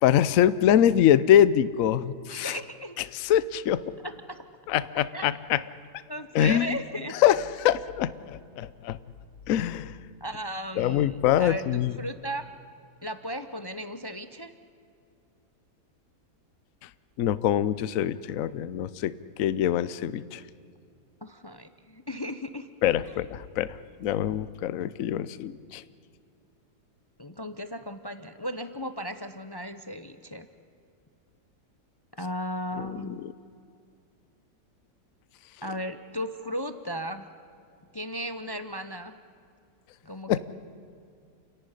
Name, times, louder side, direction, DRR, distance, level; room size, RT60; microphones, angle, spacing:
voice 1, 0.0-2.6 3.1-3.8 4.7-5.6 6.3-6.8 7.1-9.0 9.5-10.0 10.8-12.0 17.2-20.4 22.8-25.8 32.8-33.0 40.3-40.4, left 11 dB, 65° left, 16 dB, 1.0 m, -24 dB
voice 2, 2.3-3.0 4.0-4.4 5.1-5.3 6.1-7.2 10.2-12.5 13.0-14.5 21.2-22.7 23.1-23.2 27.2-30.5 32.2-33.2 35.6-37.3 37.9-39.1 40.0-40.4, equal, 40° left, 10 dB, 0.3 m, -36 dB
29.5 x 11.5 x 9.9 m, 2.4 s
omnidirectional pair, 1.8 m